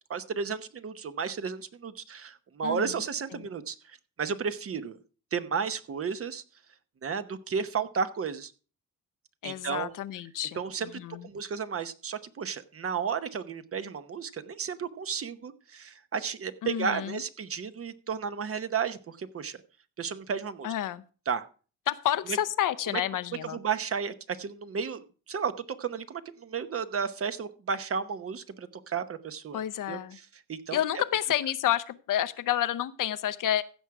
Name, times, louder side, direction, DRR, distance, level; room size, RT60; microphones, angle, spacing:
voice 1, 0.1-5.0 5.3-6.4 7.0-8.5 9.4-9.9 10.5-10.9 11.2-19.6 20.0-20.7 21.3-21.4 22.3-22.4 22.9-23.0 23.5-25.5 25.8-29.6 29.9-30.0 30.3-30.8, right 6 dB, 40° right, 12 dB, 0.9 m, -33 dB
voice 2, 2.6-3.0 3.3-3.5 9.4-11.3 16.6-17.2 20.6-21.0 21.9-23.6 29.5-30.2 30.7-33.6, left 11 dB, 65° left, 12 dB, 0.7 m, -30 dB
15.5 x 6.3 x 4.7 m, 0.37 s
cardioid pair, 115°, 34 cm